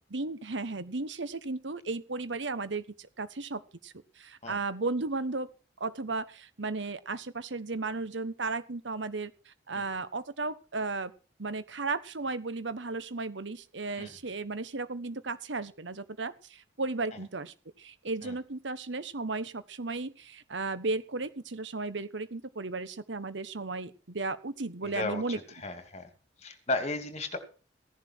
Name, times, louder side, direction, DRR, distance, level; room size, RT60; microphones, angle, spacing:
voice 1, 0.1-2.8 3.2-5.5 5.8-11.1 11.4-25.4, right 3 dB, 80° right, 14 dB, 1.2 m, -35 dB
voice 2, 24.8-26.1 26.4-27.4, left 2 dB, 40° left, 8 dB, 2.7 m, -34 dB
16.0 x 11.0 x 4.6 m, 0.35 s
head